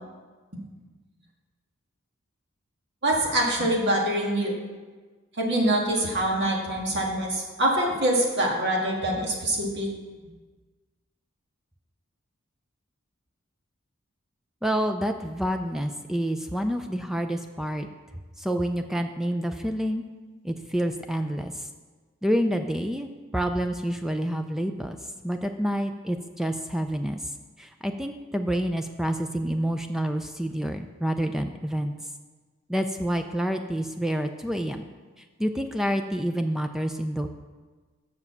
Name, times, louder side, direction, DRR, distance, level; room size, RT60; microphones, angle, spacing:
voice 1, 3.0-4.5 5.4-9.9, right 1 dB, 55° right, -2 dB, 1.9 m, -24 dB
voice 2, 14.6-17.9 18.4-20.0 20.4-21.7 22.2-25.0 25.2-27.3 27.6-31.9 32.7-34.8 35.4-37.3, equal, ahead, 6 dB, 0.3 m, -28 dB
7.2 x 6.6 x 7.0 m, 1.4 s
head